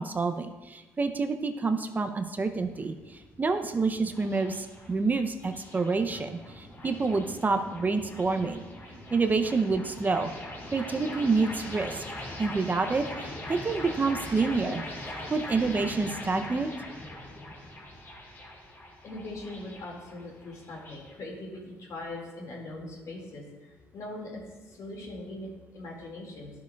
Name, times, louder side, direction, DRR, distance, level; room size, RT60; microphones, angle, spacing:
voice 1, 0.0-2.9 3.4-8.6 9.1-10.3 10.7-12.0 12.4-14.8 15.3-16.7, right 4 dB, 30° right, 7 dB, 0.6 m, -28 dB
sound 1, 2.4-21.1, left 1 dB, 35° left, 2.3 m, -42 dB
voice 2, 19.0-26.5, left 2 dB, 60° left, -1 dB, 2.1 m, -41 dB
11.5 x 6.7 x 2.3 m, 1.2 s
cardioid pair, 80°, 6 cm